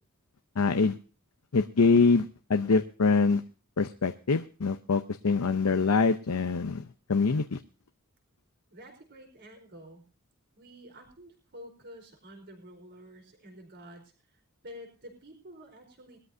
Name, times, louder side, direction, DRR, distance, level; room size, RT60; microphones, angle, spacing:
voice 1, 0.6-1.0 1.5-3.4 3.8-7.6, left 4 dB, 75° left, 8 dB, 0.7 m, -24 dB
voice 2, 8.7-10.0 10.6-14.0 14.3-16.2, equal, 50° right, 1 dB, 4.4 m, -49 dB
21.5 x 13.0 x 2.7 m, 0.37 s
head